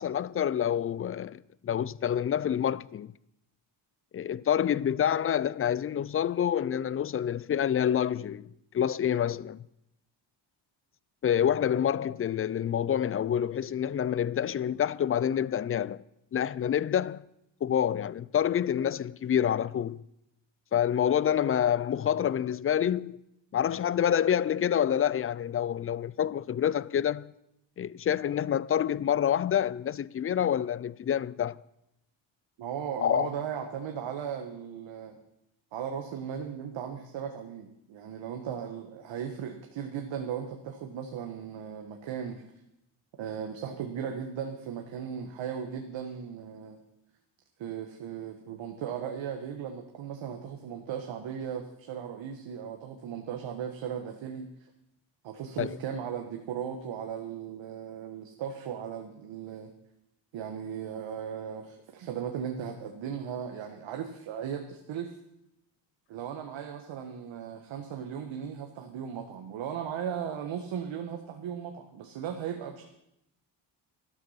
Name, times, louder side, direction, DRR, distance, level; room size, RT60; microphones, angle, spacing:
voice 1, 0.0-3.1 4.1-8.5 8.7-9.6 11.2-16.0 16.3-17.2 17.6-20.0 20.7-23.2 23.5-27.3 27.8-31.6 33.0-33.3 55.6-55.8, left 9 dB, 30° left, 0.4 m, -27 dB
voice 2, 32.6-35.2 35.7-42.4 43.2-46.8 47.6-54.5 55.2-59.7 60.3-65.1 66.1-72.9, right 8 dB, 75° right, 1.5 m, -37 dB
12.5 x 12.0 x 5.7 m
cardioid pair, 85°, 46 cm